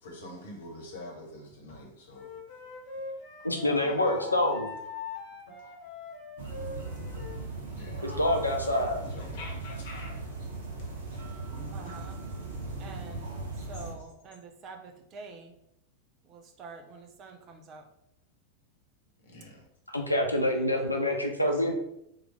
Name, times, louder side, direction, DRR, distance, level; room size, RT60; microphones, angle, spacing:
voice 1, 0.0-2.3 3.6-4.6 5.6-5.7 7.7-8.3 9.0-10.3 11.1-12.0 19.2-19.6, left 1 dB, 60° left, 1.0 m, -45 dB
Wind instrument woodwind instrument, 2.1-7.4, left 4 dB, 30° left, 1.4 m, -41 dB
voice 2, 3.4-4.7 8.0-9.0 19.9-21.7, left 1 dB, 85° left, 0.6 m, -26 dB
sound 1, 6.4-13.9, right 3 dB, 60° right, 0.9 m, -38 dB
voice 3, 11.7-12.1 12.8-13.3 13.7-15.5 16.2-17.8 20.5-21.2, right 4 dB, 35° right, 0.6 m, -47 dB
3.7 x 3.2 x 3.4 m
figure-of-eight pair, 90°, 0 cm